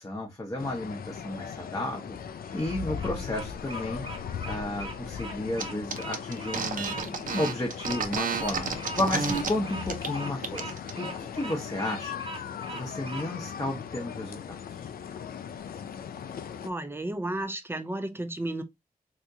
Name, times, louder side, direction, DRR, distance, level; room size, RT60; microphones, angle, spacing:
voice 1, 0.0-2.2 2.5-4.0 4.4-12.2 12.7-14.4, left 1 dB, 25° left, 0.7 m, -33 dB
sound 1, 0.6-16.7, left 7 dB, 85° left, 0.4 m, -38 dB
Bird vocalization bird call bird song, 2.4-13.3, right 3 dB, 35° right, 0.9 m, -41 dB
sound 2, 5.6-5.7 5.9-9.5 9.9-10.1 10.4-10.9, right 5 dB, 65° right, 0.6 m, -31 dB
voice 2, 16.6-18.6, right 1 dB, 15° right, 0.4 m, -33 dB
3.4 x 2.8 x 2.6 m
wide cardioid pair, 135°, 15 cm